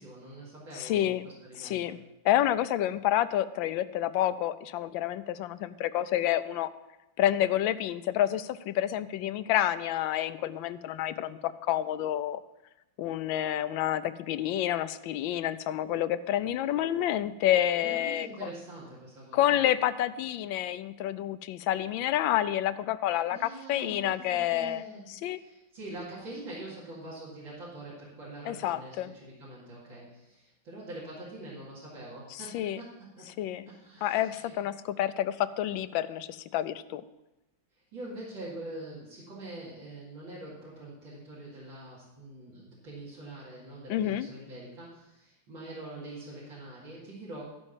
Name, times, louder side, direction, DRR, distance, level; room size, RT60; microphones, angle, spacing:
voice 1, 0.0-2.0 17.8-19.4 23.3-33.3 33.7-34.5 37.9-47.4, right 2 dB, 80° right, -7 dB, 3.0 m, -44 dB
voice 2, 0.7-1.2 1.6-6.7 7.2-12.4 13.0-18.3 19.3-24.8 25.1-25.4 28.5-29.1 32.3-32.8 33.4-33.7 34.0-37.0 43.9-44.3, left 12 dB, 80° left, 13 dB, 1.3 m, -29 dB
13.0 x 5.4 x 7.2 m, 0.98 s
omnidirectional pair, 2.1 m